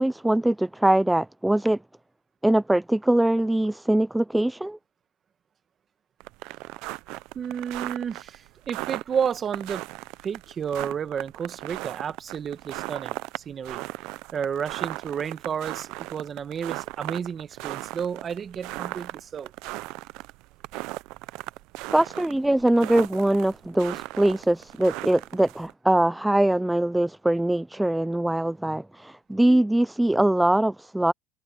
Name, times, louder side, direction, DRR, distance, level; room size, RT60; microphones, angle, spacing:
voice 1, 0.0-1.8 2.4-4.8 21.9-31.1, right 1 dB, 5° right, 0.3 m, -22 dB
sound 1, 6.2-25.7, right 21 dB, 65° right, 0.5 m, -37 dB
voice 2, 7.3-9.9 10.2-13.8 14.3-19.5, right 7 dB, 30° right, 1.6 m, -31 dB
supercardioid pair, 120°, 0 cm